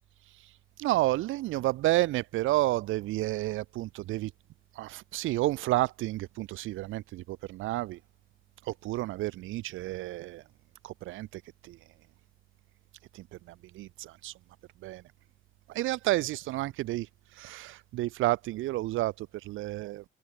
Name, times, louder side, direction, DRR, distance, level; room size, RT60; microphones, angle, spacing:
voice 1, 0.8-4.3 4.8-8.0 8.7-10.4 10.8-11.8 13.1-13.2 13.7-14.3 14.8-15.0 15.7-17.1 17.4-20.0, right 17 dB, 85° right, 0.6 m, -30 dB
cardioid pair, 90°, 20 cm